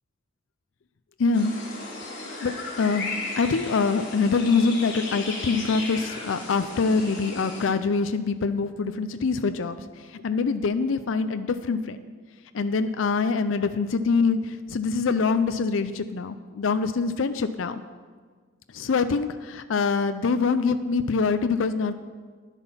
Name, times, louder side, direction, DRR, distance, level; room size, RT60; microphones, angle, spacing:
voice 1, 1.2-1.5 2.4-9.8 10.1-12.0 12.5-17.8 18.7-21.9, left 4 dB, 85° left, 11 dB, 0.5 m, -24 dB
sound 1, 1.3-7.7, left 3 dB, 65° left, 3.1 m, -35 dB
10.5 x 8.2 x 5.6 m, 1.5 s
head